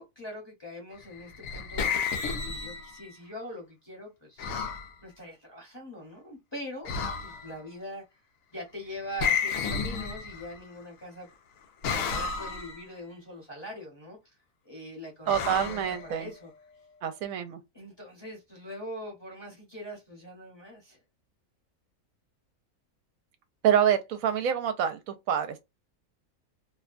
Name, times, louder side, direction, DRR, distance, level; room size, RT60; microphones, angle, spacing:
voice 1, 0.0-4.5 5.0-6.9 7.2-8.2 8.5-11.3 11.9-14.3 14.6-16.5 17.7-21.0, equal, 20° left, 0.8 m, -42 dB
sound 1, 1.1-3.1 4.4-4.9 6.9-7.6 9.2-10.7 11.8-12.8 15.3-16.5, left 6 dB, 75° left, 1.0 m, -32 dB
voice 2, 15.3-16.3 17.0-17.6 23.6-25.6, right 9 dB, 80° right, 1.0 m, -26 dB
2.8 x 2.1 x 2.4 m
omnidirectional pair, 1.5 m